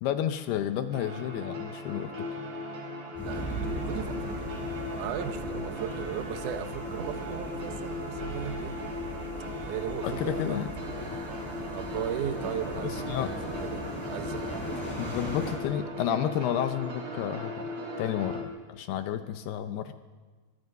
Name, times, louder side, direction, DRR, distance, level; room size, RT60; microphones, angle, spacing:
voice 1, 0.0-2.3 10.0-10.7 12.8-13.3 15.0-17.5 18.0-19.9, left 10 dB, 75° left, 10 dB, 2.5 m, -31 dB
sound 1, 0.9-18.4, left 1 dB, 40° right, 3.5 m, -38 dB
sound 2, 3.1-15.5, equal, ahead, 7.0 m, -39 dB
voice 2, 3.2-8.8 9.6-10.9 11.7-15.1, right 9 dB, 85° right, 9 dB, 1.8 m, -37 dB
24.0 x 23.0 x 5.5 m, 1.3 s
omnidirectional pair, 5.1 m